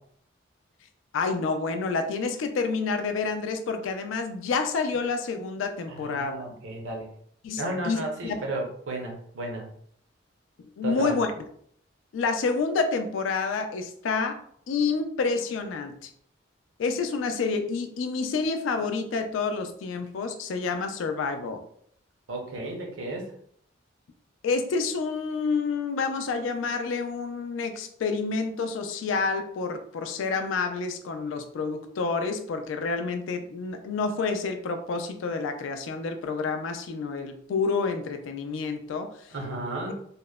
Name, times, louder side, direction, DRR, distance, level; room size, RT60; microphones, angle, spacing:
voice 1, 1.1-6.4 7.4-8.5 10.8-11.3 12.1-14.4 14.7-16.1 16.8-21.6 24.4-39.1, left 4 dB, 75° left, 7 dB, 0.3 m, -28 dB
voice 2, 5.9-7.1 7.6-9.7 10.8-11.1 22.3-23.3 39.3-39.9, right 2 dB, 75° right, 1 dB, 0.6 m, -33 dB
2.8 x 2.0 x 2.2 m, 0.65 s
head